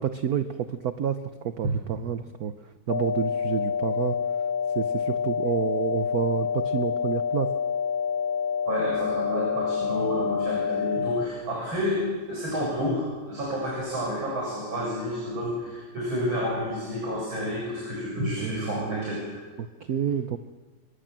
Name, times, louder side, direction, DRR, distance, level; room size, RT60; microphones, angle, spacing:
voice 1, 0.0-2.5 2.9-4.2 4.7-7.5 18.4-19.2 19.6-20.4, right 8 dB, 55° right, 9 dB, 1.2 m, -29 dB
sound 1, 2.9-11.3, left 6 dB, 80° left, 2.2 m, -27 dB
voice 2, 8.6-19.4, equal, 75° right, -3 dB, 8.0 m, -30 dB
26.5 x 23.0 x 7.6 m, 1.4 s
omnidirectional pair, 2.2 m